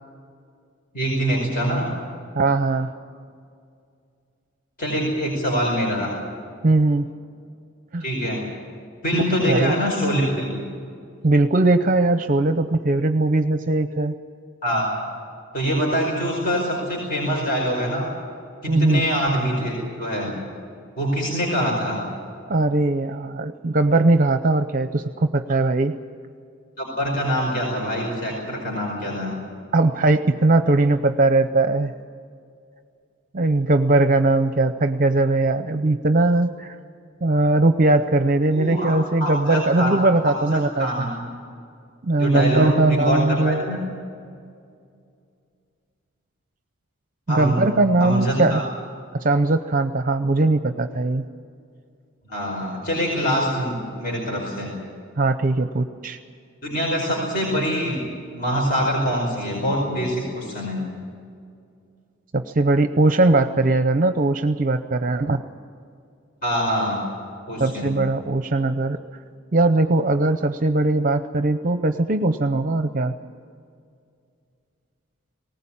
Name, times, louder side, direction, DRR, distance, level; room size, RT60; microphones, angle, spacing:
voice 1, 0.9-1.9 4.8-6.1 8.0-8.4 9.0-10.6 14.6-14.9 15.5-18.1 18.6-20.4 21.0-22.0 26.8-29.4 38.5-38.9 39.2-39.9 40.2-41.2 42.2-43.8 47.3-47.6 48.0-48.6 52.3-54.7 56.6-58.0 58.3-60.8 66.4-67.1 67.5-68.0, equal, 45° left, -2 dB, 5.1 m, -24 dB
voice 2, 2.4-2.9 6.6-7.1 7.9-8.0 9.4-9.7 11.2-14.1 18.7-19.0 22.5-25.9 29.7-31.9 33.3-36.8 37.2-41.1 42.0-43.7 47.3-48.6 49.2-51.2 55.2-56.2 62.3-65.4 67.6-69.0 69.5-73.1, right 2 dB, 40° right, 9 dB, 0.7 m, -20 dB
19.5 x 18.5 x 8.8 m, 2.3 s
head